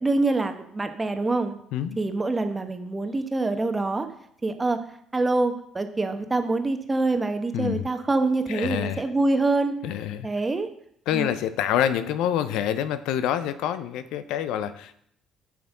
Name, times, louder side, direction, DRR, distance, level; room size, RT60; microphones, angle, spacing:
voice 1, 0.0-1.6 2.0-4.1 4.4-4.8 5.1-9.7 10.2-10.7 11.1-11.3, right 2 dB, 25° right, 7 dB, 1.1 m, -25 dB
voice 2, 7.5-7.8 8.5-9.0 9.8-10.3 11.1-15.0, left 10 dB, 70° left, 13 dB, 0.4 m, -27 dB
10.0 x 6.0 x 3.7 m, 0.69 s
hypercardioid pair, 50°, 0 cm